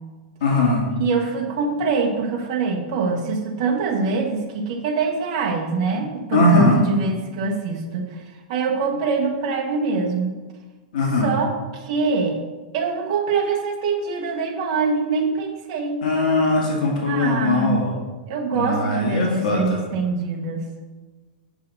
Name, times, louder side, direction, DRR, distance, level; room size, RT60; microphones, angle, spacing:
voice 1, 0.4-0.8 6.3-6.8 10.9-11.3 16.0-17.9 18.5-19.8, left 2 dB, 65° left, -2 dB, 2.0 m, -20 dB
voice 2, 1.0-8.2 8.5-10.3 11.2-12.4 12.7-16.0 17.1-17.8 18.3-20.6, right 4 dB, 40° right, 3 dB, 1.2 m, -24 dB
8.2 x 6.3 x 4.1 m, 1.3 s
supercardioid pair, 170°, 5 cm